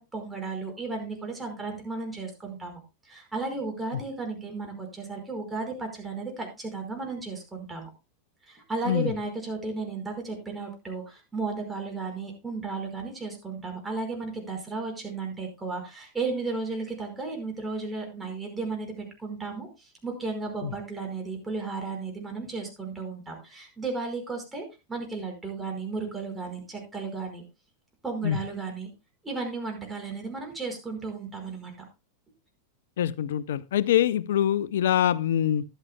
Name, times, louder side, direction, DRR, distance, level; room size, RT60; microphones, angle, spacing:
voice 1, 0.0-7.9 8.5-27.4 28.0-28.9 29.2-31.7, right 3 dB, 15° right, 2 dB, 5.0 m, -34 dB
voice 2, 33.0-35.6, left 10 dB, 70° left, 19 dB, 0.6 m, -24 dB
14.0 x 11.5 x 2.2 m, 0.26 s
hypercardioid pair, 95°, 0 cm